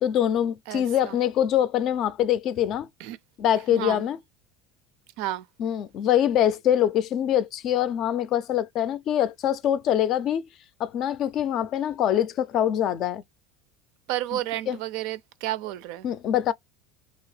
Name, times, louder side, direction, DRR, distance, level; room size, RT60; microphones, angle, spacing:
voice 1, 0.0-2.9 3.4-4.2 5.6-10.4 10.8-13.2 14.7-14.8 16.0-16.5, left 10 dB, 50° left, 0.4 m, -24 dB
voice 2, 0.7-1.2 3.0-3.2 3.7-4.0 5.2-5.5 14.1-16.1, right 14 dB, 70° right, 0.4 m, -31 dB
2.9 x 2.8 x 3.2 m
supercardioid pair, 115°, 0 cm